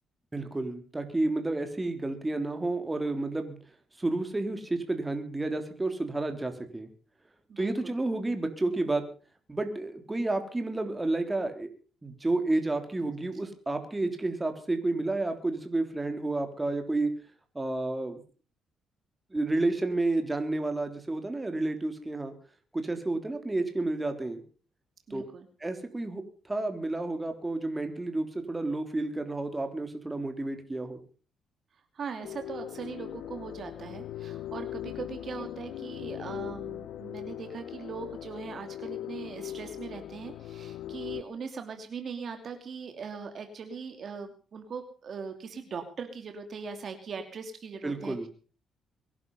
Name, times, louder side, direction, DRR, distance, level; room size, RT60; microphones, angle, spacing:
voice 1, 0.3-3.6 4.0-6.9 7.6-9.1 9.5-11.7 12.0-17.1 17.6-18.2 19.3-22.3 22.7-24.4 25.1-25.2 25.6-31.0 47.8-48.3, right 2 dB, 15° right, 6 dB, 3.5 m, -30 dB
voice 2, 7.5-7.9 25.1-25.5 31.9-48.3, right 5 dB, 50° right, 6 dB, 2.7 m, -40 dB
sound 1, 32.2-41.2, left 12 dB, 85° left, 0.7 m, -40 dB
23.0 x 11.0 x 5.6 m, 0.40 s
cardioid pair, 90°, 0 cm